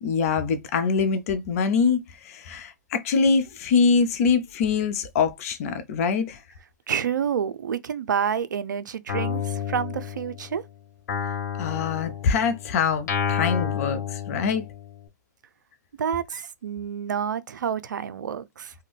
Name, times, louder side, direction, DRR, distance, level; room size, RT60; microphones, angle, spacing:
voice 1, 0.0-6.4 11.6-14.6, left 5 dB, 50° left, 0.6 m, -24 dB
voice 2, 6.9-10.6 16.0-18.7, right 7 dB, 80° right, 0.4 m, -28 dB
Guitar, 9.1-10.6 11.1-15.0, left 8 dB, 70° left, 0.9 m, -30 dB
2.5 x 2.2 x 3.4 m
hypercardioid pair, 125°, 10 cm